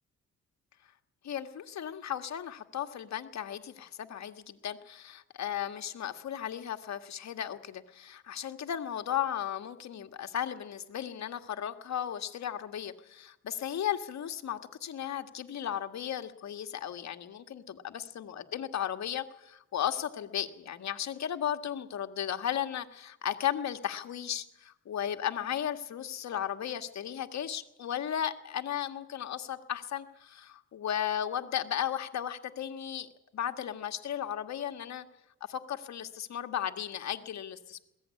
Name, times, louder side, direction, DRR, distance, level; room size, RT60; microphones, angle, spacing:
voice 1, 1.2-35.1 35.4-37.8, left 10 dB, 65° left, 7 dB, 1.9 m, -35 dB
21.5 x 16.5 x 9.8 m, 0.93 s
cardioid pair, 75°, 29 cm